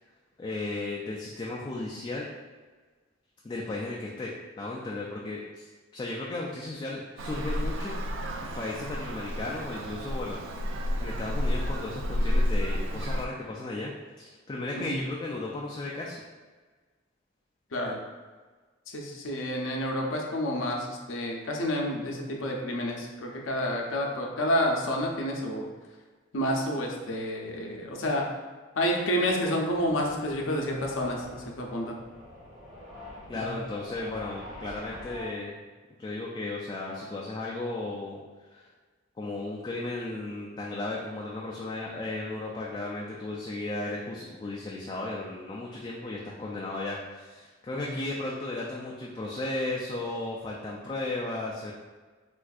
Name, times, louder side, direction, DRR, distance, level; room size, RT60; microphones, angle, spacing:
voice 1, 0.4-2.3 3.4-7.9 8.5-13.9 14.2-16.2 33.3-35.6 36.0-38.2 38.5-38.7 39.2-51.7, left 2 dB, 25° left, -4 dB, 0.3 m, -35 dB
Traffic noise roadway noise, 7.2-13.3, equal, 70° right, 0.3 m, -30 dB
voice 2, 18.9-25.7 26.3-28.2 28.8-32.0 33.3-33.5 47.7-47.9, equal, 80° left, 0 dB, 0.6 m, -29 dB
sound 1, 29.7-35.3, left 1 dB, 20° right, 1.1 m, -46 dB
4.4 x 2.5 x 2.4 m, 1.4 s
head